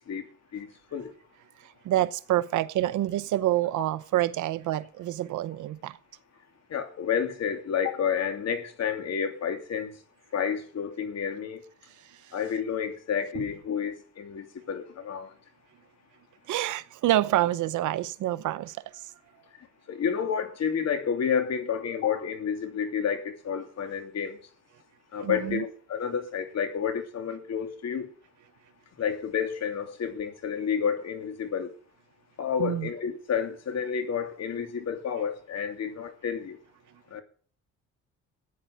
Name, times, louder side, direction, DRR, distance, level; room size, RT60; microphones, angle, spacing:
voice 1, 0.1-1.1 6.7-9.9 10.3-11.6 12.3-15.3 19.9-24.4 25.1-28.1 29.0-31.7 32.4-36.6 37.1-37.2, left 7 dB, 60° left, 2.9 m, -30 dB
voice 2, 1.9-5.9 16.5-18.7 25.2-25.6 32.6-32.9, right 14 dB, 80° right, 0.9 m, -27 dB
15.0 x 9.4 x 6.5 m
cardioid pair, 90°, 30 cm